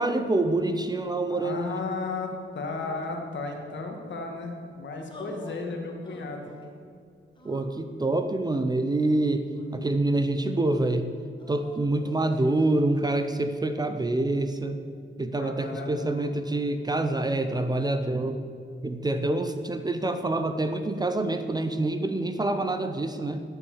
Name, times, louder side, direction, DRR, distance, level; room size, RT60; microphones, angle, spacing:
voice 1, 0.0-1.8 7.4-11.1 11.5-14.8 15.2-18.4 18.8-23.4, right 2 dB, 20° right, 8 dB, 0.5 m, -26 dB
voice 2, 1.3-6.5 15.4-16.3, left 3 dB, 65° left, 3 dB, 1.7 m, -34 dB
sound 1, 5.1-5.7 6.0-6.7 7.3-8.3 9.0-10.0 11.4-12.7, left 1 dB, 25° left, 1.5 m, -48 dB
10.5 x 6.8 x 7.1 m, 2.3 s
cardioid pair, 120°, 21 cm